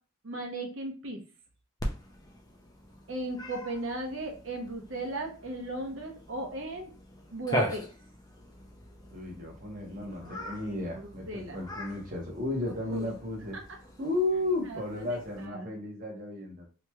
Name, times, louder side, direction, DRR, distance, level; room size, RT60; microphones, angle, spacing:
voice 1, 0.2-1.2 3.1-6.9 7.3-7.9 9.9-10.6 10.9-11.6 12.6-13.1 14.7-15.1 15.5-15.7, right 2 dB, 70° right, 2 dB, 0.8 m, -37 dB
Cat, 1.8-15.5, left 1 dB, 20° left, 0.4 m, -41 dB
voice 2, 9.1-13.6 14.0-16.7, left 2 dB, 40° right, -1 dB, 1.0 m, -33 dB
3.0 x 2.9 x 2.3 m, 0.35 s
head